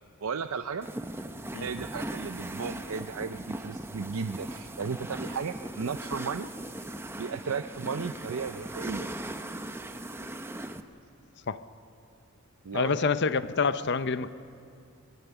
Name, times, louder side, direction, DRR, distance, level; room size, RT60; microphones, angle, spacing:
voice 1, 0.2-0.9 1.6-6.5 7.2-9.1 12.6-13.1, right 5 dB, 65° right, 9 dB, 0.5 m, -35 dB
sound 1, 0.8-10.8, right 1 dB, 10° right, 0.7 m, -39 dB
voice 2, 12.7-14.3, left 5 dB, 50° left, 13 dB, 0.7 m, -27 dB
25.5 x 20.5 x 7.0 m, 2.4 s
head